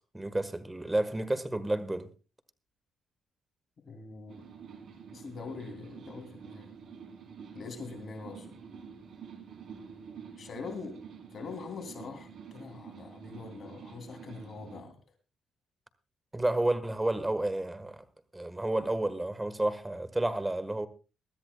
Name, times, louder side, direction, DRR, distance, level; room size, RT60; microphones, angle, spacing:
voice 1, 0.1-2.1 16.3-18.0 18.3-20.9, right 1 dB, 15° right, 1.5 m, -30 dB
voice 2, 3.8-4.5 5.1-6.7 7.5-8.5 10.4-11.0 11.3-15.0, left 4 dB, 50° left, 3.0 m, -43 dB
sound 1, 4.3-14.8, right 6 dB, 60° right, 3.8 m, -48 dB
22.5 x 13.0 x 2.3 m
cardioid pair, 90°, 0 cm